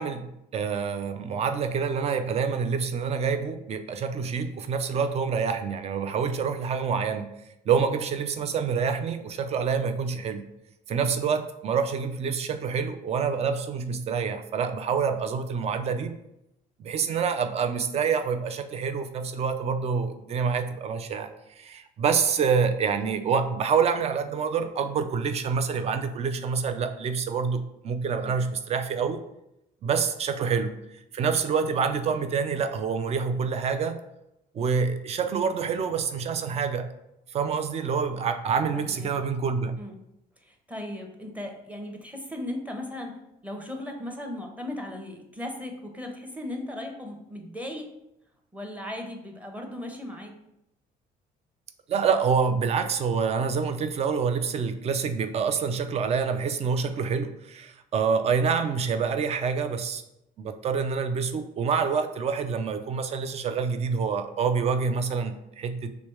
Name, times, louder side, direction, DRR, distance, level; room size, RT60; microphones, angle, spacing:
voice 1, 0.0-7.3 7.7-10.4 10.9-16.2 16.8-21.3 21.6-29.2 29.8-30.7 31.1-34.0 34.5-36.9 37.3-39.8 51.9-60.0 60.4-65.9, right 6 dB, 40° right, 8 dB, 0.4 m, -27 dB
voice 2, 38.7-39.1 39.8-39.9 40.4-47.9 48.5-50.4, left 1 dB, 10° right, 2 dB, 0.8 m, -37 dB
3.3 x 3.1 x 4.6 m, 0.84 s
cardioid pair, 110°, 17 cm